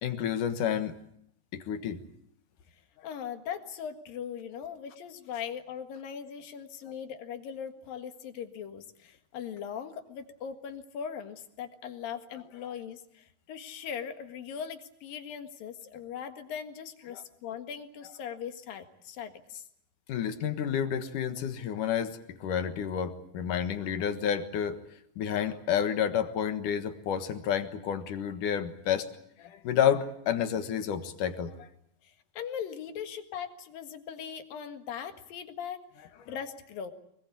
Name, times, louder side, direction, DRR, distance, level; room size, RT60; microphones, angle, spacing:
voice 1, 0.0-0.9 1.5-2.0 17.1-17.2 20.1-24.8 25.2-29.1 29.4-31.7, left 8 dB, 70° left, 9 dB, 3.0 m, -30 dB
voice 2, 3.0-19.7 32.0-36.9, left 8 dB, 85° left, 7 dB, 3.6 m, -40 dB
25.0 x 22.0 x 8.4 m, 0.72 s
omnidirectional pair, 3.9 m